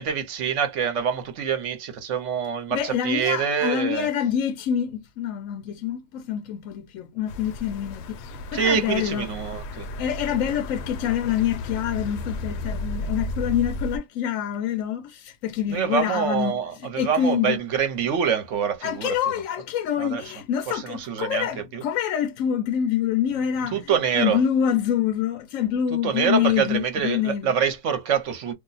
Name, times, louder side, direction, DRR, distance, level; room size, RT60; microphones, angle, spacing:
voice 1, 0.0-4.1 8.5-9.9 15.7-19.2 20.0-20.2 20.7-21.8 23.7-24.4 26.0-28.5, right 7 dB, 55° right, 1.0 m, -25 dB
voice 2, 2.7-9.3 10.0-17.6 18.8-27.5, left 9 dB, 65° left, 0.8 m, -26 dB
sound 1, 7.3-14.0, left 2 dB, 85° left, 1.1 m, -33 dB
2.6 x 2.1 x 3.9 m
omnidirectional pair, 1.7 m